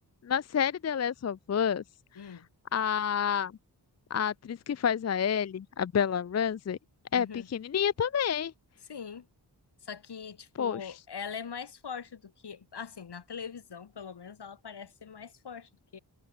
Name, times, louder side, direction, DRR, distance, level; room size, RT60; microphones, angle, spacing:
voice 1, 0.2-1.8 2.2-2.4 2.7-3.5 4.1-6.8 7.1-8.5 10.6-10.9, left 8 dB, 40° left, 0.5 m, -29 dB
voice 2, 2.2-2.5 7.1-7.5 8.9-9.3 9.8-16.0, left 6 dB, 75° left, 2.6 m, -42 dB
cardioid pair, 60°, 41 cm